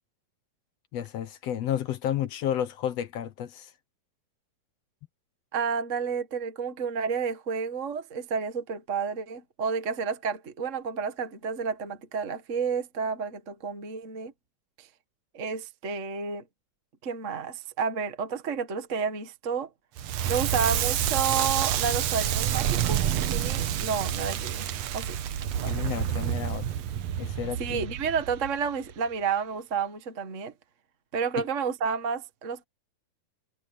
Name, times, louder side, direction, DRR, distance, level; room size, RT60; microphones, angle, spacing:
voice 1, 0.9-3.7 25.6-26.7 27.2-27.9 31.4-31.5, left 10 dB, 65° left, 1.7 m, -31 dB
voice 2, 5.5-14.3 14.8-14.9 15.3-16.4 17.0-19.7 20.3-24.7 24.9-25.2 25.6-25.7 27.6-30.5 31.1-32.6, right 6 dB, 40° right, 1.1 m, -31 dB
Crackle, 20.0-28.9, right 10 dB, 65° right, 1.8 m, -28 dB
omnidirectional pair, 4.0 m